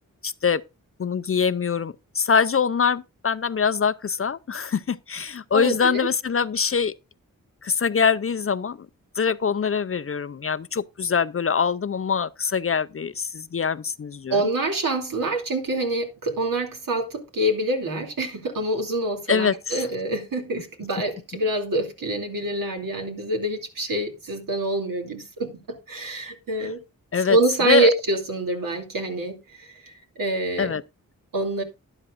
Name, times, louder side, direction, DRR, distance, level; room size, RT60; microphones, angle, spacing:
voice 1, 0.2-0.6 1.0-6.9 7.6-8.8 9.2-14.4 19.3-19.8 27.1-27.4 27.7-27.9 30.6-30.8, left 6 dB, 40° left, 0.5 m, -24 dB
voice 2, 5.5-6.1 14.3-26.8 27.2-30.7 31.3-31.6, right 2 dB, 70° right, 2.7 m, -26 dB
12.0 x 11.0 x 2.5 m
cardioid pair, 60°, 35 cm